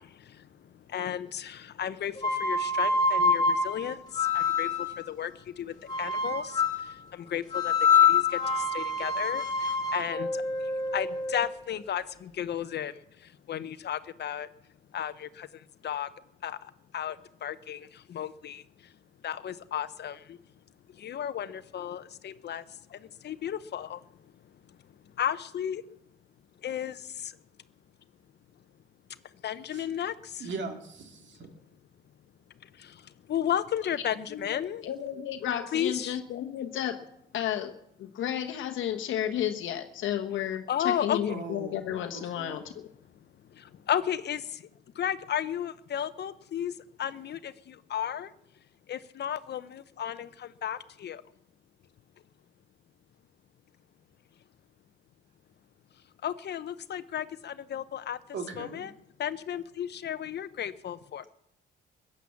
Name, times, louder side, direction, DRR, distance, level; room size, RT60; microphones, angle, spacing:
voice 1, 0.0-14.5 14.9-16.1 16.4-18.9 19.2-20.4 20.9-24.0 24.7-24.8 25.2-25.8 26.6-27.4 29.4-30.5 32.6-34.8 35.7-36.1 40.7-41.4 43.5-44.7 44.9-48.3 48.9-51.2 56.2-58.2 58.6-58.9 59.2-61.3, left 10 dB, 60° left, 14 dB, 0.8 m, -34 dB
sound 1, 2.2-5.0 5.9-6.9 7.5-11.5, left 4 dB, 20° left, 3.5 m, -26 dB
voice 2, 30.4-31.5 41.3-41.8 42.1-42.6 58.3-58.8, right 4 dB, 65° right, 5 dB, 2.2 m, -39 dB
voice 3, 34.3-37.0 37.3-37.7 38.0-42.6, left 10 dB, 80° left, 4 dB, 1.1 m, -32 dB
16.0 x 10.0 x 7.2 m, 0.75 s
cardioid pair, 90°, 20 cm